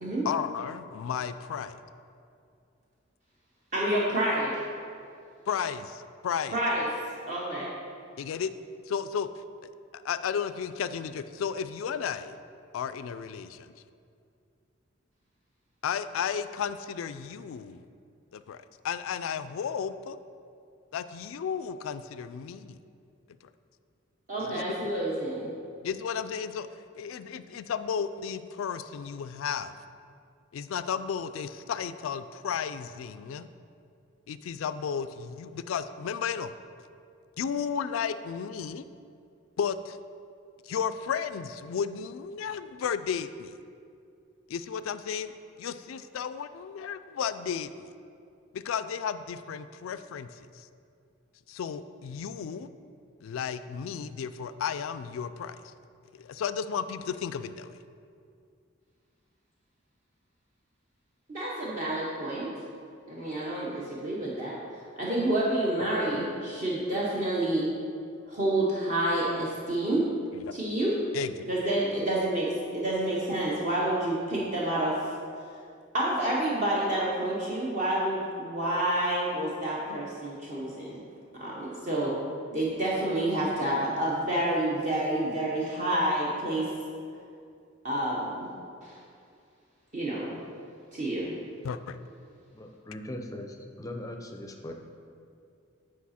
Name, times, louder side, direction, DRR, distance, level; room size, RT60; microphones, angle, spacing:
voice 1, 0.2-1.8 5.5-6.6 8.2-8.5 8.9-9.3 9.6-9.7 10.0-12.4 12.7-13.7 15.8-17.8 18.3-20.2 20.9-22.8 24.4-24.6 25.8-26.7 26.9-29.7 30.5-33.5 34.3-36.5 37.4-38.8 39.6-40.0 40.6-43.5 44.5-45.3 45.6-47.9 48.5-50.7 51.5-52.7 53.2-55.6 56.1-57.8 70.3-70.6 71.1-71.5 91.6-92.0, left 7 dB, 80° left, 12 dB, 0.3 m, -33 dB
voice 2, 3.7-4.7 6.5-6.9 7.3-7.7 24.3-25.5 61.3-62.5 63.1-64.5 65.0-67.7 68.3-70.1 70.5-70.9 71.5-72.5 72.7-74.9 75.9-81.0 81.4-82.1 82.5-86.6 87.8-88.5 88.8-88.9 89.9-90.4 90.9-91.3, right 1 dB, 40° right, -5 dB, 0.9 m, -28 dB
voice 3, 92.5-94.7, left 1 dB, 15° left, 3 dB, 0.5 m, -40 dB
8.3 x 4.8 x 4.2 m, 2.4 s
head